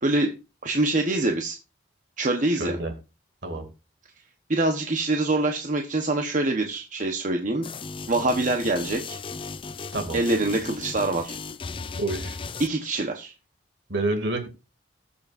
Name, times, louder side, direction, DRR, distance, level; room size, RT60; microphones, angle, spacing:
voice 1, 0.0-0.3 0.6-1.6 2.2-2.8 4.5-7.7 8.1-9.2 10.1-11.4 12.6-13.3, right 2 dB, 45° right, 3 dB, 1.1 m, -25 dB
voice 2, 2.5-2.9 3.4-3.6 9.9-10.2 11.9-12.4 13.9-14.5, right 2 dB, 65° right, 5 dB, 2.5 m, -28 dB
sound 1, 7.6-12.7, left 4 dB, 30° left, 0.5 m, -36 dB
19.5 x 6.9 x 2.6 m, 0.28 s
head